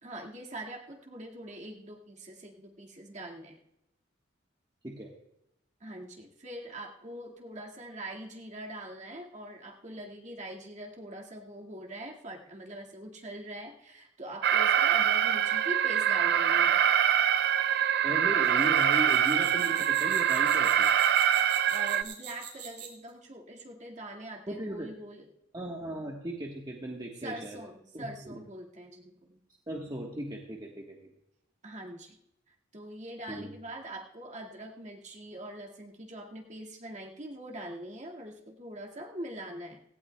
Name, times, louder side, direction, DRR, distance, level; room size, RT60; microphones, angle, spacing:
voice 1, 0.0-3.6 5.8-16.8 21.4-25.3 27.2-29.4 31.6-32.1 32.7-39.8, right 1 dB, 40° right, 0 dB, 2.0 m, -43 dB
Alarm, 14.4-22.0, right 9 dB, 55° right, 0.4 m, -24 dB
voice 2, 18.0-20.9 24.5-24.9 25.5-27.6 27.9-28.4 29.7-31.0 33.3-33.5, right 1 dB, 25° right, -2 dB, 1.3 m, -37 dB
sound 1, 18.4-23.1, right 9 dB, 75° right, 4.1 m, -44 dB
17.5 x 16.0 x 2.3 m, 0.83 s
head